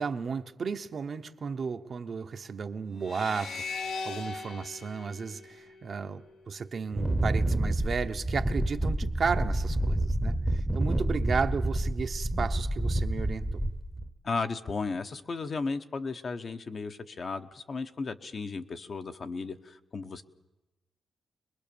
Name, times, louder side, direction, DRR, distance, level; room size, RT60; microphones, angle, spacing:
voice 1, 0.0-13.6, right 5 dB, 45° right, 7 dB, 1.0 m, -34 dB
sound 1, 3.0-6.3, left 4 dB, 75° left, 2.2 m, -39 dB
Wind, 6.9-14.1, right 1 dB, 10° right, 1.0 m, -29 dB
voice 2, 14.2-20.2, left 4 dB, 40° left, 7 dB, 1.0 m, -35 dB
23.0 x 21.5 x 7.0 m, 1.1 s
wide cardioid pair, 135°, 0 cm